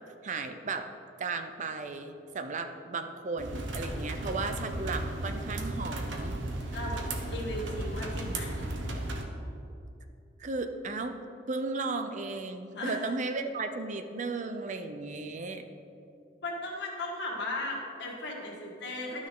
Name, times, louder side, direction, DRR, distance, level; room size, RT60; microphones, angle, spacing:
voice 1, 0.2-0.9 1.2-6.4 10.4-11.2 11.5-15.6, right 3 dB, 40° right, 7 dB, 0.5 m, -35 dB
sound 1, 3.4-9.3, right 1 dB, 90° right, 1.0 m, -35 dB
voice 2, 6.7-8.7 12.7-13.0 16.4-19.3, left 2 dB, 65° left, -3 dB, 1.8 m, -36 dB
12.0 x 6.1 x 3.8 m, 2.7 s
head